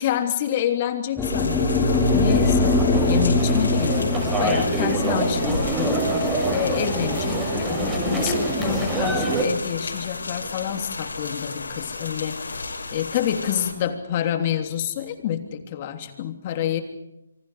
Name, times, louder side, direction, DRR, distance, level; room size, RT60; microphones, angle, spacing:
voice 1, 0.0-12.4 12.9-16.8, left 10 dB, 35° left, 6 dB, 3.1 m, -28 dB
sound 1, 1.2-13.7, left 3 dB, 85° left, 5.8 m, -33 dB
sound 2, 1.2-9.4, left 2 dB, 10° left, 3.1 m, -23 dB
sound 3, 1.7-9.4, right 2 dB, 10° right, 6.2 m, -26 dB
28.5 x 25.0 x 5.0 m, 0.86 s
hypercardioid pair, 155°, 0 cm